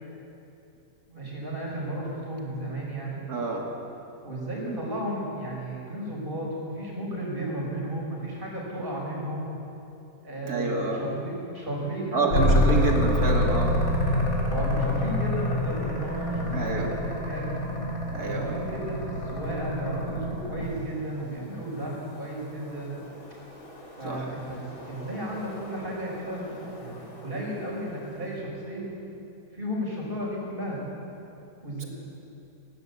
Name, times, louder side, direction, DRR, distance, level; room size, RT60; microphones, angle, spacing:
voice 1, 1.1-3.2 4.2-9.5 10.2-12.4 12.7-13.0 14.5-17.5 18.2-23.0 24.0-28.9 29.5-30.8 31.6-31.9, right 1 dB, 35° right, -3 dB, 6.1 m, -34 dB
voice 2, 3.3-3.7 10.4-11.0 12.1-13.8 16.5-16.9 18.1-18.6 24.0-24.3, right 3 dB, 85° right, 0 dB, 2.9 m, -28 dB
sound 1, 12.3-20.9 23.1-27.6, left 1 dB, 65° left, 3.9 m, -27 dB
19.5 x 17.5 x 8.3 m, 2.8 s
omnidirectional pair, 1.6 m